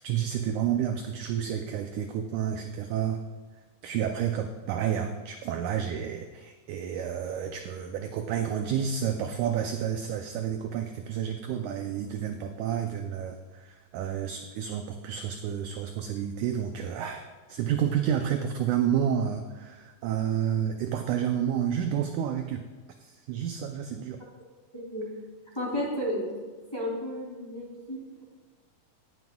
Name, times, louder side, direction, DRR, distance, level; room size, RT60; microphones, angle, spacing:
voice 1, 0.0-3.2 3.8-22.7 23.0-24.2, right 9 dB, 80° right, 5 dB, 1.8 m, -30 dB
voice 2, 24.7-25.1 25.5-26.2 26.7-28.2, equal, 10° left, -5 dB, 2.5 m, -33 dB
18.5 x 7.9 x 2.3 m, 1.4 s
omnidirectional pair, 3.9 m